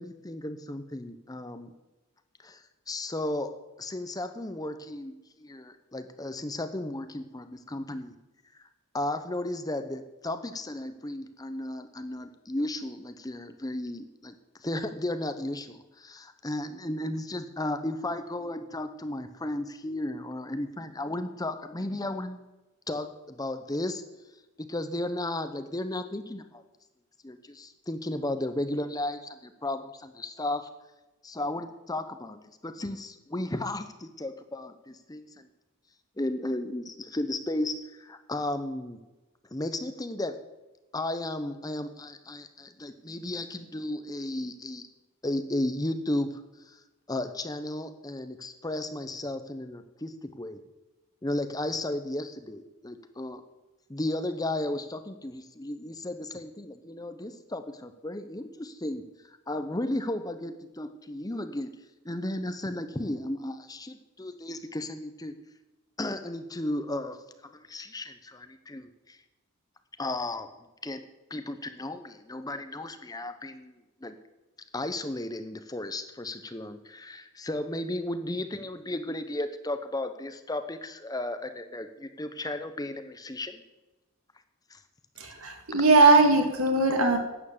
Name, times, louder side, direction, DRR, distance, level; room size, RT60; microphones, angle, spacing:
voice 1, 0.0-1.7 2.4-3.5 3.8-8.1 8.5-8.6 8.9-14.3 14.6-22.4 22.9-24.0 24.6-26.6 27.2-30.7 31.2-35.5 36.2-39.0 39.5-40.4 40.9-44.9 45.2-46.4 46.7-46.8 47.1-50.6 51.2-53.4 53.9-61.7 62.0-65.3 66.0-69.2 70.0-70.5 70.8-71.0 71.3-74.2 74.7-83.6 84.7-84.8, left 1 dB, 15° left, 9 dB, 0.8 m, -34 dB
voice 2, 85.2-87.2, right 3 dB, 65° right, 4 dB, 2.2 m, -20 dB
11.5 x 9.1 x 7.3 m, 1.1 s
head